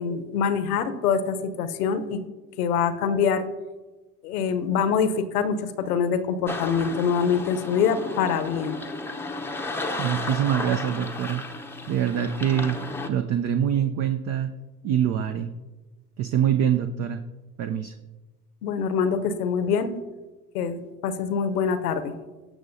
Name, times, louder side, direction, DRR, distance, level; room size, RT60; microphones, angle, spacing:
voice 1, 0.0-2.2 2.6-3.4 4.2-8.8 18.6-19.9 20.5-22.1, left 6 dB, 70° left, 11 dB, 1.0 m, -24 dB
sound 1, 6.5-13.1, left 2 dB, 5° left, 0.7 m, -34 dB
voice 2, 10.0-11.4 11.9-12.8 13.1-14.5 14.8-15.5 16.2-17.2 17.6-17.9, right 9 dB, 35° right, 9 dB, 0.5 m, -24 dB
18.0 x 6.2 x 2.7 m, 1.2 s
hypercardioid pair, 75°, 48 cm